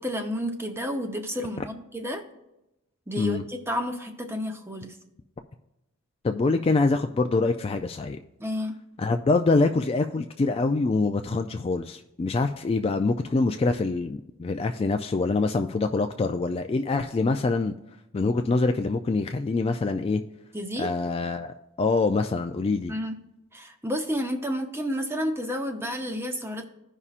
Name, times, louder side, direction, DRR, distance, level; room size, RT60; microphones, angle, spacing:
voice 1, 0.0-2.2 3.1-5.0 8.4-8.7 20.5-20.9 22.9-23.2 23.5-26.6, equal, 10° right, 5 dB, 0.8 m, -31 dB
voice 2, 6.2-8.2 9.0-17.7 18.1-20.2 20.8-22.9, left 3 dB, 25° left, 6 dB, 0.3 m, -25 dB
15.5 x 5.5 x 2.4 m, 0.89 s
head